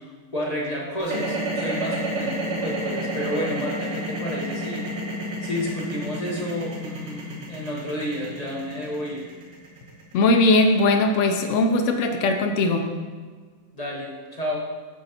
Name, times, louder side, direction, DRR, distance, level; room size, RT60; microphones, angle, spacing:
voice 1, 0.0-4.8 5.2-9.3 13.7-14.6, equal, 30° left, -4 dB, 0.9 m, -31 dB
sound 1, 1.0-11.2, right 1 dB, 80° right, 1.9 m, -30 dB
voice 2, 10.1-12.9, left 2 dB, 70° left, 4 dB, 0.7 m, -19 dB
8.8 x 4.0 x 4.3 m, 1.5 s
omnidirectional pair, 2.0 m